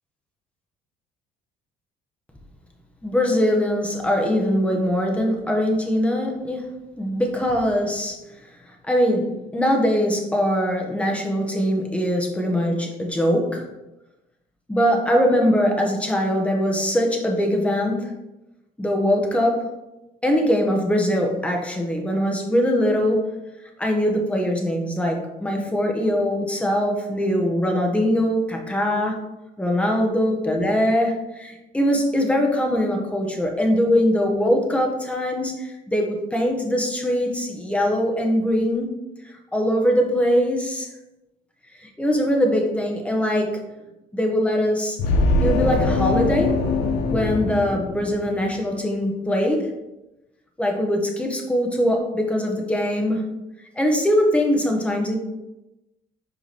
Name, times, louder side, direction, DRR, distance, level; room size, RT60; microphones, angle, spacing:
voice 1, 3.0-6.7 7.0-8.2 8.7-13.7 14.7-18.1 18.8-19.6 20.2-23.4 23.8-29.2 29.6-38.9 39.2-40.9 41.8-43.6 44.1-45.0 45.4-46.5 47.1-49.7 50.6-53.2 53.8-55.2, equal, 5° left, 1 dB, 1.2 m, -22 dB
sound 1, 45.0-48.5, left 2 dB, 80° left, 0.9 m, -22 dB
5.0 x 4.7 x 4.2 m, 0.96 s
cardioid pair, 110°, 17 cm